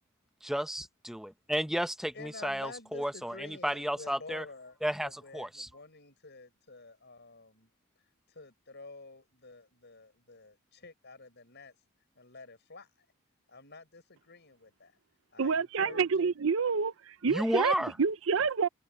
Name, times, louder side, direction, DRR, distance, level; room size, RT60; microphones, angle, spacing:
voice 1, 0.4-4.4 4.8-5.7 17.3-17.9, equal, ahead, 0.7 m, -32 dB
voice 2, 2.1-7.7 8.3-11.7 12.1-13.0 13.5-15.0 15.3-16.3, left 3 dB, 55° left, 6.8 m, -50 dB
voice 3, 15.4-18.7, right 5 dB, 65° right, 0.6 m, -28 dB
head